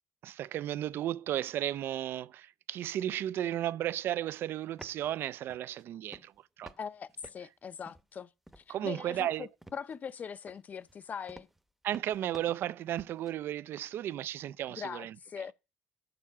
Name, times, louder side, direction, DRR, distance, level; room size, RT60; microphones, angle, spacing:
voice 1, 0.2-6.7 8.7-9.5 11.8-15.2, right 12 dB, 65° right, 0.4 m, -34 dB
sound 1, 4.6-5.1 5.5-5.8 6.1-6.8 7.1-8.2 8.5-8.8 9.1-10.1 10.5-13.3, right 1 dB, 5° right, 0.8 m, -52 dB
voice 2, 6.8-8.3 8.6-11.5 14.7-15.5, left 7 dB, 40° left, 0.6 m, -41 dB
7.1 x 6.7 x 5.7 m
cardioid pair, 95°, 4 cm